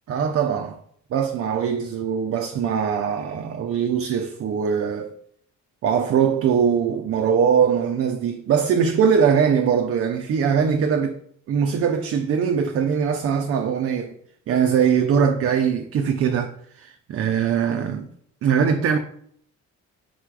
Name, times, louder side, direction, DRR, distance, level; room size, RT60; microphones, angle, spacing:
voice 1, 0.1-0.8 1.1-5.2 5.8-11.2 11.5-14.1 14.5-18.1 18.4-19.0, right 7 dB, 50° right, 0.4 m, -21 dB
4.1 x 2.3 x 4.6 m
cardioid pair, 90°, 30 cm